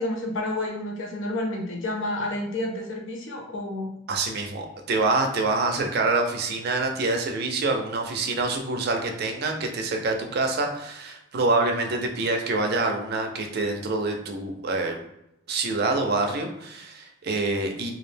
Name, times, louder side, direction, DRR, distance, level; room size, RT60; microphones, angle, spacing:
voice 1, 0.0-3.9, left 1 dB, 70° left, 1 dB, 0.6 m, -30 dB
voice 2, 4.1-15.0 15.5-17.9, right 3 dB, 50° right, 4 dB, 0.4 m, -26 dB
2.3 x 2.0 x 3.3 m, 0.85 s
head